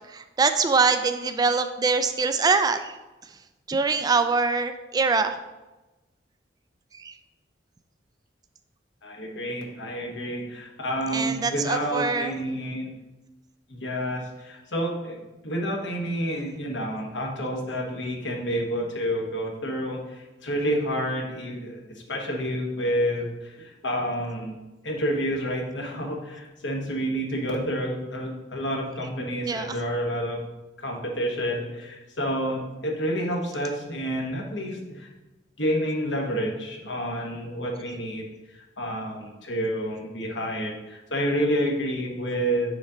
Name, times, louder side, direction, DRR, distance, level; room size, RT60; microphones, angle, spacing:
voice 1, 0.0-2.9 3.7-5.4 6.9-7.1 11.1-12.4 29.4-29.8, right 4 dB, 20° right, 9 dB, 0.3 m, -24 dB
voice 2, 9.0-12.9 13.7-21.8 22.1-24.5 24.8-30.4 30.8-35.1 35.6-38.2 38.5-42.7, equal, 75° left, 0 dB, 1.2 m, -29 dB
5.1 x 4.1 x 4.9 m, 1.1 s
head